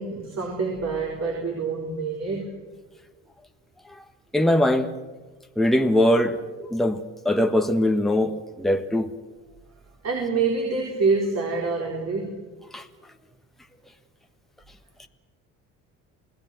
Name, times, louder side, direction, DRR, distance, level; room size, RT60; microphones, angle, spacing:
voice 1, 0.0-2.6 10.0-12.4, right 4 dB, 50° right, 4.6 m, -26 dB
voice 2, 4.3-4.9 5.6-6.4 6.7-9.1 12.7-12.8, left 1 dB, ahead, 1.5 m, -21 dB
28.5 x 18.0 x 7.8 m
supercardioid pair, 85°, 34 cm